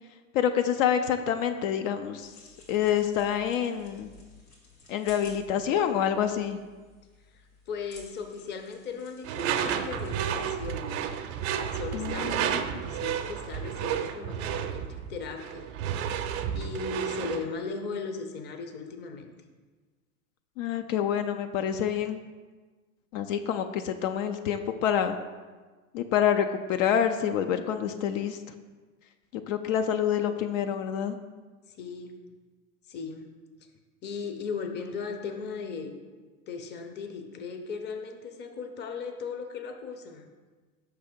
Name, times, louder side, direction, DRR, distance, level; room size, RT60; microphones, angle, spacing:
voice 1, 0.3-2.3 2.7-4.1 4.9-6.6 11.9-12.8 20.6-22.2 23.1-25.2 25.9-28.4 29.5-31.2, left 9 dB, 70° left, 8 dB, 0.5 m, -27 dB
sound 1, 2.2-10.2, left 2 dB, 90° left, 1.9 m, -54 dB
voice 2, 7.3-11.0 11.7-15.7 16.5-19.3 31.7-32.2 32.9-33.3 34.0-36.0 36.5-40.3, left 5 dB, 25° left, 6 dB, 0.6 m, -37 dB
Door / Screech, 9.2-17.5, right 9 dB, 55° right, 0.6 m, -31 dB
5.4 x 3.4 x 5.1 m, 1.4 s
hypercardioid pair, 100°, 41 cm